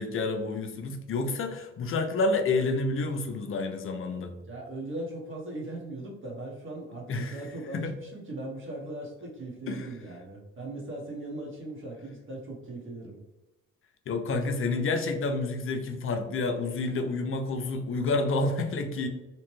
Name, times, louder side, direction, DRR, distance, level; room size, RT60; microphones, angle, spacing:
voice 1, 0.0-4.3 7.1-7.4 7.7-7.9 9.7-9.9 14.1-19.1, left 3 dB, 45° left, 5 dB, 0.5 m, -29 dB
voice 2, 4.4-13.2, right 2 dB, 40° right, -2 dB, 1.0 m, -39 dB
2.9 x 2.1 x 3.0 m, 1.0 s
cardioid pair, 90°, 30 cm